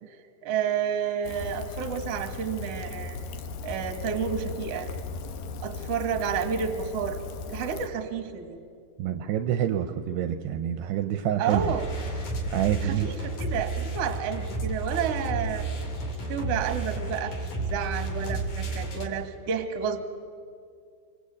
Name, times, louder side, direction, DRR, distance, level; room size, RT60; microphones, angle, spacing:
voice 1, 0.0-3.2 3.6-4.9 5.6-7.2 7.5-8.6 11.4-11.9 12.8-15.7 16.3-20.0, right 7 dB, 55° right, 7 dB, 1.9 m, -30 dB
Rain, 1.2-7.9, left 4 dB, 65° left, 2.4 m, -37 dB
voice 2, 9.0-11.7 12.5-13.1, right 10 dB, 75° right, 8 dB, 2.6 m, -27 dB
sound 1, 11.4-19.1, right 2 dB, 45° left, 3.9 m, -32 dB
26.0 x 25.0 x 8.6 m, 2.2 s
omnidirectional pair, 5.3 m